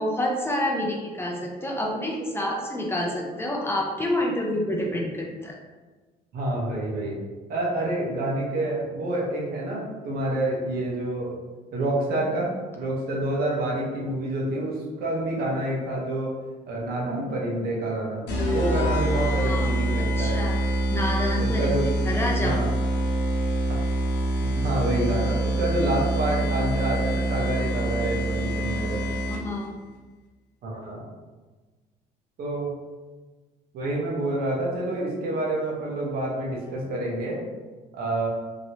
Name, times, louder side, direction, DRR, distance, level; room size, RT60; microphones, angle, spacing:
voice 1, 0.0-5.6 19.3-19.7 20.0-20.6 20.9-21.7 22.1-22.6 26.4-26.5 29.3-29.7, left 1 dB, 15° left, -1 dB, 0.6 m, -28 dB
voice 2, 6.3-7.2 7.5-11.4 11.7-16.3 16.7-18.2 18.5-20.4 21.4-21.9 22.4-22.7 24.4-29.0 30.6-31.1 32.4-32.7 33.7-37.4 37.9-38.3, right 1 dB, 60° right, -3 dB, 1.0 m, -28 dB
sound 1, 18.3-29.7, right 1 dB, 90° left, 0.7 m, -25 dB
3.0 x 2.9 x 2.8 m, 1.3 s
cardioid pair, 110°, 17 cm